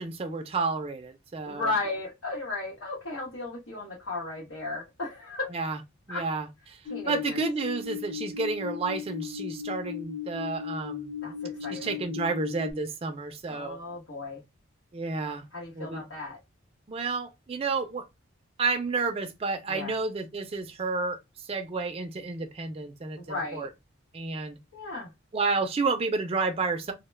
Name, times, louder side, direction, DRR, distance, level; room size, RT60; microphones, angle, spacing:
voice 1, 0.0-1.7 5.5-5.8 6.1-6.8 7.1-11.1 11.7-13.8 14.9-15.4 15.8-16.1 16.9-18.0 18.6-21.2 21.4-23.7 24.1-24.6 25.3-26.9, right 4 dB, 30° right, 0.3 m, -31 dB
voice 2, 1.4-5.7 6.1-6.3 6.9-7.4 11.2-12.0 13.5-14.4 15.5-16.4 19.7-20.0 23.2-23.7 24.7-25.1, left 3 dB, 90° left, 0.9 m, -35 dB
sound 1, 6.9-12.7, left 7 dB, 45° left, 0.5 m, -37 dB
2.1 x 2.1 x 3.1 m
head